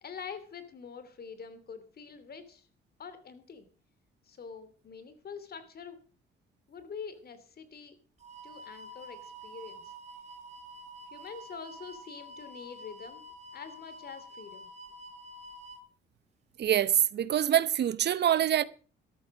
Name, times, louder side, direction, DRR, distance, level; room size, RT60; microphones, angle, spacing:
voice 1, 0.0-2.7 3.0-3.7 4.2-6.0 6.7-8.0 8.4-9.9 11.1-13.2 13.5-14.7, left 6 dB, 50° left, 3.0 m, -45 dB
sound 1, 8.2-15.8, equal, 35° right, 2.7 m, -48 dB
voice 2, 16.6-18.6, right 10 dB, 60° right, 0.8 m, -25 dB
13.5 x 12.5 x 5.0 m
cardioid pair, 90°, 20 cm